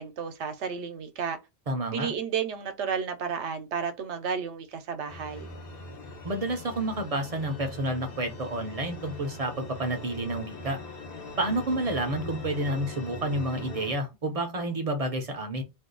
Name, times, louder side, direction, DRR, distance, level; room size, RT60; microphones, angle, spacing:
voice 1, 0.0-1.4 1.9-5.5, right 6 dB, 80° right, 0.9 m, -32 dB
voice 2, 1.7-2.1 6.2-10.8 11.4-15.6, right 1 dB, 45° right, 0.5 m, -30 dB
sound 1, 5.1-14.0, left 1 dB, 55° left, 1.0 m, -41 dB
2.5 x 2.3 x 3.7 m
omnidirectional pair, 1.2 m